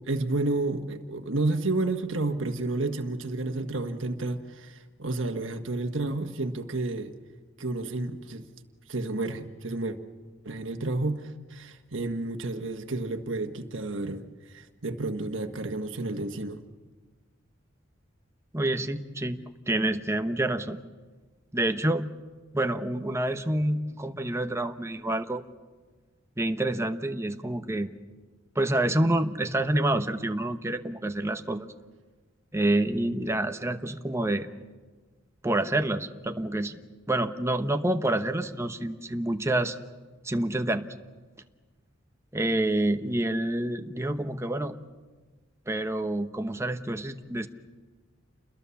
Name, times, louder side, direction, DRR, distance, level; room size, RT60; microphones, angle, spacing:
voice 1, 0.1-7.1 7.6-8.4 8.9-10.0 10.4-14.2 14.5-16.6, right 2 dB, 70° right, 1.6 m, -31 dB
voice 2, 18.5-20.8 21.5-22.1 22.5-25.4 26.4-27.9 28.5-31.7 32.5-34.5 35.4-36.8 37.1-39.8 40.2-40.9 42.3-44.8 45.7-47.5, right 1 dB, 15° right, 1.0 m, -27 dB
29.0 x 21.5 x 7.2 m
head